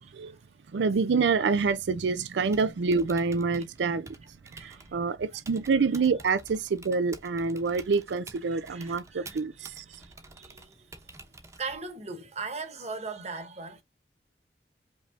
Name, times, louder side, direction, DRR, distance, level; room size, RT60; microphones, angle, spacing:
voice 1, 0.0-0.6 4.6-5.0 5.3-5.4 8.7-11.2 11.6-13.8, right 4 dB, 40° right, 1.1 m, -40 dB
voice 2, 0.7-4.1 4.5-10.0, right 4 dB, 85° right, 0.4 m, -27 dB
Typing, 2.4-12.0, right 2 dB, 15° right, 0.9 m, -50 dB
5.3 x 3.3 x 2.4 m
head